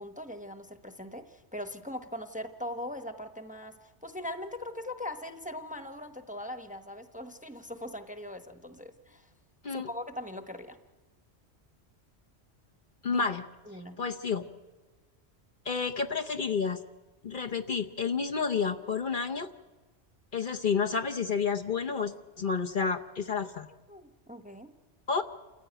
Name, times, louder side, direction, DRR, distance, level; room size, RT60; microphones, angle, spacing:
voice 1, 0.0-9.3 9.7-10.8 13.0-13.3 13.7-14.0 23.3-23.5 23.9-24.7, left 1 dB, 5° right, 7 dB, 1.0 m, -41 dB
voice 2, 13.0-13.4 14.0-14.4 15.6-16.8 17.2-19.5 20.3-23.7 25.1-25.2, left 5 dB, 50° left, 5 dB, 1.0 m, -30 dB
28.5 x 15.0 x 9.1 m, 1.3 s
omnidirectional pair, 1.2 m